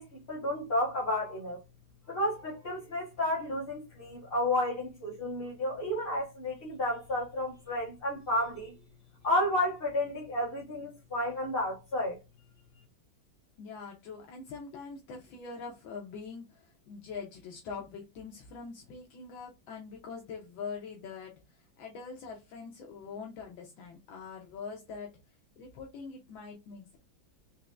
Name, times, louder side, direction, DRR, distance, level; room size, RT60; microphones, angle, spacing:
voice 1, 0.0-1.6 2.1-8.7 9.2-12.2, left 1 dB, 30° left, 1.5 m, -31 dB
voice 2, 13.6-25.1 25.6-27.0, left 5 dB, 75° left, 1.5 m, -43 dB
4.5 x 3.0 x 2.5 m
omnidirectional pair, 2.2 m